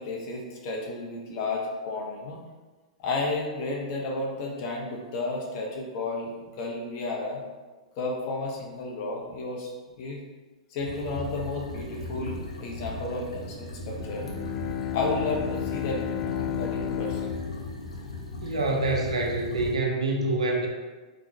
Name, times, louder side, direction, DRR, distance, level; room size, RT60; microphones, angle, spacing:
voice 1, 0.0-2.4 3.0-7.4 8.0-9.7 10.0-10.2 10.7-14.3 14.9-17.3, left 2 dB, 45° left, -1 dB, 1.0 m, -32 dB
sound 1, 10.8-19.8, left 2 dB, 85° left, 0.8 m, -37 dB
Bowed string instrument, 13.9-18.7, left 10 dB, 30° left, 0.4 m, -33 dB
voice 2, 18.4-20.7, right 2 dB, 80° right, 0 dB, 0.8 m, -26 dB
3.9 x 3.2 x 2.9 m, 1.2 s
figure-of-eight pair, 105°, 3 cm